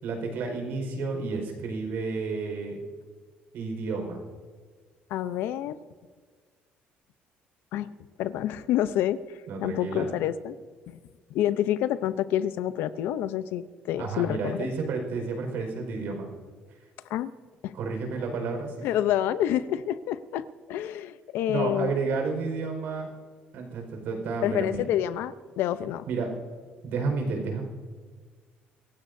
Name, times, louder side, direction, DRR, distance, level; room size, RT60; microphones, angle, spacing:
voice 1, 0.0-2.8 3.5-4.2 9.5-10.1 14.0-16.3 17.7-18.7 21.5-23.1 23.5-24.9 26.1-26.3 26.8-27.6, right 4 dB, 70° right, 2 dB, 4.7 m, -31 dB
voice 2, 5.1-5.8 7.7-7.9 8.2-9.2 9.6-10.6 10.9-11.0 11.3-14.7 17.1-17.3 17.6-17.7 18.8-22.0 24.4-26.1, left 11 dB, 80° left, 13 dB, 0.7 m, -28 dB
26.0 x 16.0 x 2.7 m, 1.5 s
cardioid pair, 125°, 4 cm